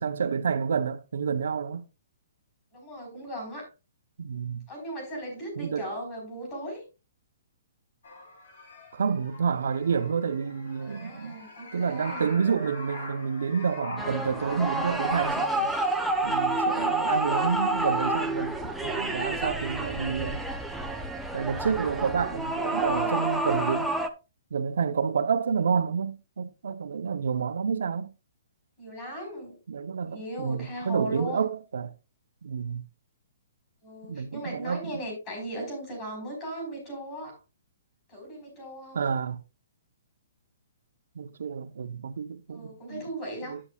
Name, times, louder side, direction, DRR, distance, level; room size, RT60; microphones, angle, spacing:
voice 1, 0.0-1.8 4.2-4.6 5.6-5.9 8.9-11.3 11.7-15.7 16.2-18.6 18.8-20.4 21.3-23.9 24.5-28.1 29.7-31.9 32.4-32.8 34.1-34.8 38.9-39.4 41.2-43.1 43.5-43.6, right 6 dB, 70° right, 0.7 m, -29 dB
voice 2, 2.7-3.7 4.7-6.8 10.8-12.3 22.7-23.3 28.8-29.6 30.0-31.5 33.8-37.4 38.1-39.1 42.5-43.6, right 1 dB, 20° left, 4.0 m, -37 dB
sound 1, 8.0-15.3, left 2 dB, 60° left, 4.1 m, -42 dB
sound 2, 14.0-24.1, right 2 dB, ahead, 0.5 m, -29 dB
9.8 x 8.6 x 2.3 m
hypercardioid pair, 180°, 0 cm